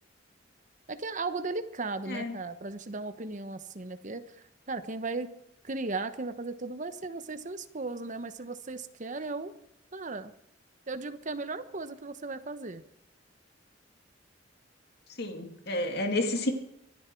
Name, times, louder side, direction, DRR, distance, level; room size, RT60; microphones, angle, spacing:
voice 1, 0.9-5.3 5.6-9.5 9.9-10.3 10.9-12.8, right 3 dB, 40° right, 10 dB, 1.1 m, -36 dB
voice 2, 15.2-16.5, left 1 dB, 60° left, 4 dB, 2.3 m, -30 dB
25.0 x 10.5 x 4.6 m, 0.79 s
head